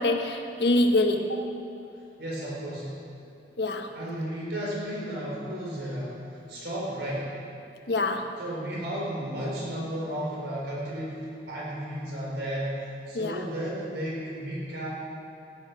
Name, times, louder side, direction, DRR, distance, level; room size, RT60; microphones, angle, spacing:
voice 1, 0.0-1.4 3.6-3.9 7.9-8.3 13.1-13.4, left 2 dB, 75° left, 5 dB, 1.1 m, -25 dB
voice 2, 2.2-2.9 3.9-7.3 8.4-14.9, right 1 dB, 80° right, -5 dB, 3.9 m, -33 dB
16.0 x 10.0 x 6.0 m, 2.8 s
head